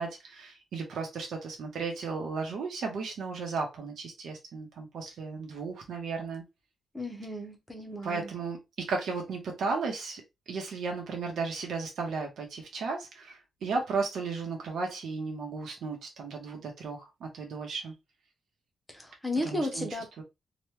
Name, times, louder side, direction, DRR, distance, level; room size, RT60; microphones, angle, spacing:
voice 1, 0.0-6.4 8.0-17.9 19.4-19.9 20.2-20.3, right 4 dB, 80° right, 0.8 m, -35 dB
voice 2, 6.9-8.3 18.9-20.1, left 1 dB, 5° left, 0.6 m, -34 dB
3.0 x 2.2 x 3.1 m
wide cardioid pair, 175°, 0 cm